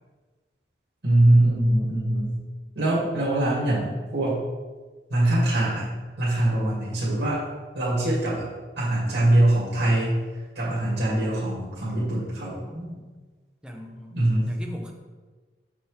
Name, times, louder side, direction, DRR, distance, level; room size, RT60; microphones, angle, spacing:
voice 1, 1.0-2.4 2.8-4.4 5.1-5.9 6.2-7.4 7.7-8.5 8.8-10.2 10.6-12.6 14.1-14.6, right 1 dB, 80° right, -7 dB, 2.1 m, -22 dB
voice 2, 12.5-13.1 13.6-14.2 14.4-14.9, equal, 5° right, 1 dB, 0.7 m, -39 dB
6.2 x 6.0 x 3.2 m, 1.3 s
head